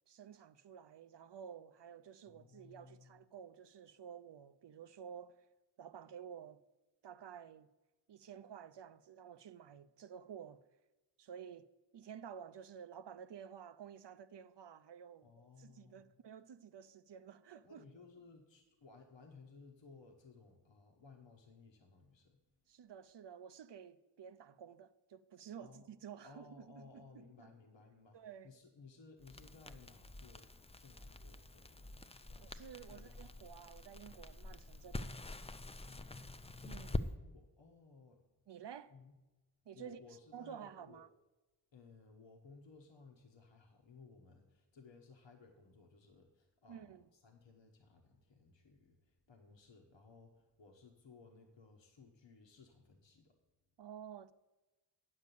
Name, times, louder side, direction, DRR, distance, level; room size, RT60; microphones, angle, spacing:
voice 1, 0.1-5.4 5.8-6.6 7.0-7.7 8.1-10.6 11.2-11.7 11.9-17.8 22.7-27.5 28.1-28.5 32.4-35.1 36.6-37.0 38.5-38.9 39.7-40.0 40.3-41.1 46.7-47.1 53.8-54.3, right 8 dB, 70° right, 0.6 m, -52 dB
voice 2, 2.3-3.3 15.2-16.1 17.6-22.4 25.6-25.9 26.2-30.5 30.8-32.5 32.8-33.4 35.8-38.2 38.9-39.1 39.7-41.0 41.7-53.4, left 4 dB, 85° left, 1.3 m, -60 dB
Crackle, 29.2-37.1, left 2 dB, 15° left, 0.4 m, -46 dB
9.6 x 6.6 x 6.8 m
wide cardioid pair, 70°, 43 cm